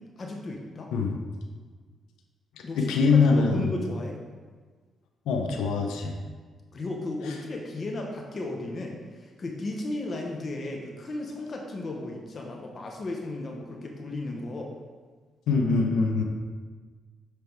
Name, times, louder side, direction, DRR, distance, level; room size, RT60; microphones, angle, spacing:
voice 1, 0.2-0.9 2.6-4.2 6.7-14.7, left 2 dB, 45° left, 1 dB, 0.9 m, -35 dB
voice 2, 2.6-3.7 5.3-6.2 7.3-7.4 15.5-16.2, left 4 dB, 85° left, 3 dB, 0.7 m, -23 dB
8.8 x 3.4 x 4.6 m, 1.4 s
cardioid pair, 75°, 0 cm